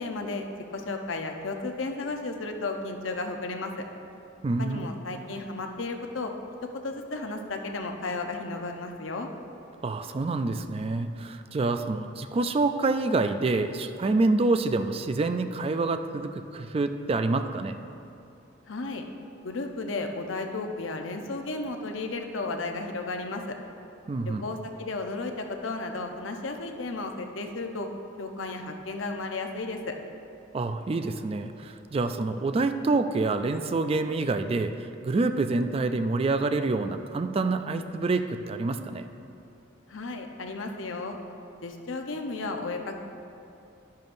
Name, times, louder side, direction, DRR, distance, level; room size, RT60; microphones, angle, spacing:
voice 1, 0.0-3.8 4.6-6.3 6.6-9.3 18.7-19.0 19.4-23.6 24.2-27.9 28.2-30.0 39.9-41.2 41.6-43.0, left 3 dB, 90° left, 4 dB, 0.8 m, -34 dB
voice 2, 4.4-4.9 9.8-17.8 24.1-24.5 30.5-34.7 35.0-39.0, right 3 dB, 30° right, 9 dB, 0.4 m, -27 dB
11.0 x 10.5 x 2.6 m, 2.7 s
head